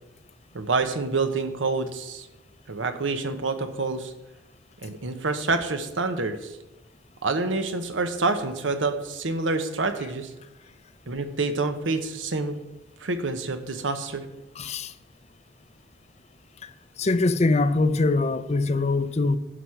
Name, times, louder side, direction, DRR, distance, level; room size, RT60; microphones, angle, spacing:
voice 1, 0.5-2.3 2.7-4.1 4.8-6.6 7.2-10.3 11.1-12.6 13.0-14.2, right 3 dB, 90° right, 1.0 m, -27 dB
voice 2, 14.6-14.9 16.6-16.7 17.0-19.4, left 3 dB, 35° left, 0.5 m, -23 dB
11.0 x 6.3 x 5.7 m
head